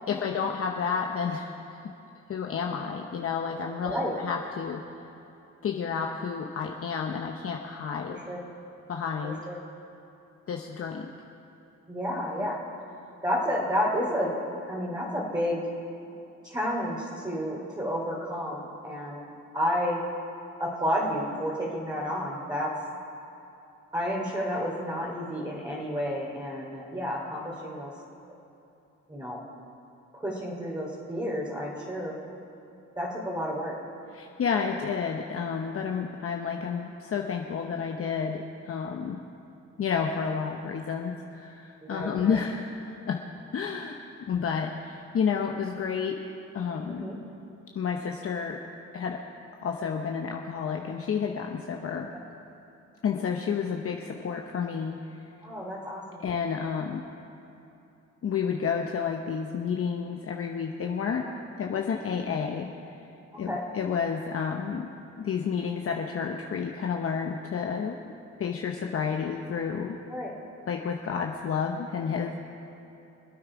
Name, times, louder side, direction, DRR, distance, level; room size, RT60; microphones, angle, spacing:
voice 1, 0.1-1.5 1.8-1.9 2.3-4.0 4.2-4.8 5.6-8.2 8.9-9.4 10.5-11.1 12.4-12.5 34.1-39.2 39.8-43.2 43.5-44.0 44.3-46.2 46.5-47.0 47.7-48.6 48.9-49.2 49.6-52.1 53.0-55.0 56.2-57.0 58.2-61.3 61.6-62.7 63.4-68.1 68.4-70.0 70.7-72.4, left 6 dB, 50° left, 2 dB, 1.0 m, -30 dB
voice 2, 3.8-4.2 8.1-8.4 9.2-9.6 11.9-12.6 13.2-14.3 14.7-15.6 16.4-19.3 19.5-20.0 20.6-22.7 23.9-27.9 29.1-29.4 30.1-32.2 32.9-33.7 41.8-42.4 46.9-47.2 55.4-56.2 61.2-61.3 63.3-63.6 70.1-70.3, equal, 15° right, -6 dB, 2.9 m, -31 dB
25.5 x 8.8 x 4.9 m, 2.8 s
cardioid pair, 90°, 30 cm